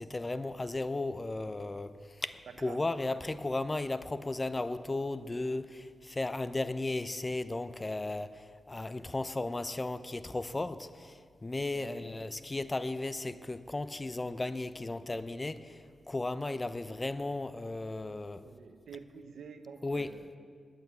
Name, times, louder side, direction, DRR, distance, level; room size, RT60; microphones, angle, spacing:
voice 1, 0.0-1.9 2.2-15.8 16.1-18.4 19.8-20.4, left 2 dB, 30° left, 13 dB, 0.7 m, -35 dB
voice 2, 11.7-12.1 18.4-20.3, right 6 dB, 80° right, 9 dB, 0.8 m, -48 dB
10.5 x 8.9 x 9.5 m, 2.1 s
supercardioid pair, 40°, 0 cm